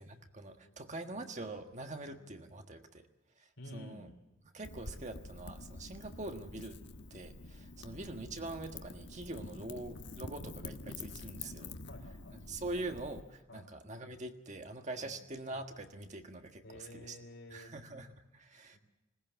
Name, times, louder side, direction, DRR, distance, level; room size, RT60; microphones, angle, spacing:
voice 1, 0.0-3.1 3.4-4.1 4.5-6.8 7.1-11.7 12.4-17.2 17.5-18.8, right 2 dB, 40° right, 5 dB, 1.6 m, -44 dB
voice 2, 0.6-1.2 2.0-2.2 3.6-4.1 5.9-6.1 7.8-8.0 9.4-9.8 11.9-12.4 13.5-13.7 15.0-15.1 16.6-17.7 18.7-18.8, left 1 dB, 80° left, 4 dB, 4.3 m, -52 dB
Wind / Fire, 4.6-13.2, left 3 dB, 65° left, 1.3 m, -47 dB
20.5 x 18.5 x 8.2 m, 0.97 s
head